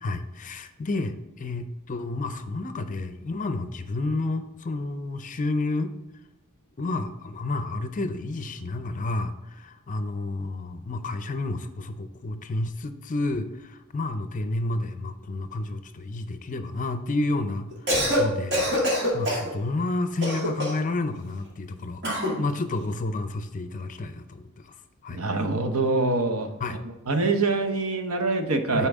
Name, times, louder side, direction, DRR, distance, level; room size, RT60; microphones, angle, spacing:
voice 1, 0.0-5.9 6.8-18.6 18.9-24.8 25.0-25.2 26.6-26.8 28.7-28.9, left 2 dB, 35° left, 9 dB, 0.5 m, -30 dB
Cough, 17.7-18.2 18.5-19.5 20.2-20.9 22.0-22.4, equal, 50° right, 2.1 m, -24 dB
voice 2, 25.1-26.5 27.1-28.9, right 3 dB, 65° right, 6 dB, 0.9 m, -24 dB
8.9 x 4.4 x 3.6 m, 1.0 s
head